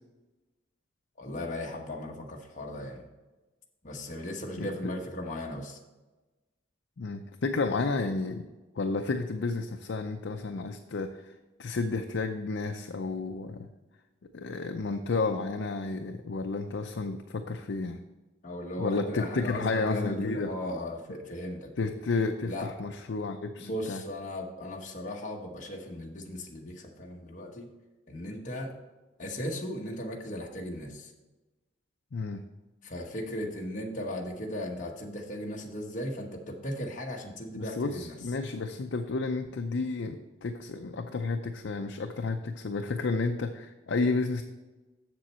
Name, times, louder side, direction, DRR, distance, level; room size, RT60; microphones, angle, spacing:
voice 1, 1.2-3.1 3.8-5.8 18.4-21.9 22.4-22.7 23.6-27.7 28.1-28.7 29.2-31.1 32.8-38.2, left 1 dB, 40° left, 0 dB, 1.0 m, -37 dB
voice 2, 7.0-8.5 8.8-11.3 11.6-13.7 14.3-18.0 18.8-20.5 21.8-24.0 32.1-32.4 37.5-44.4, left 3 dB, 70° left, 5 dB, 0.5 m, -31 dB
7.5 x 7.0 x 4.3 m, 1.2 s
head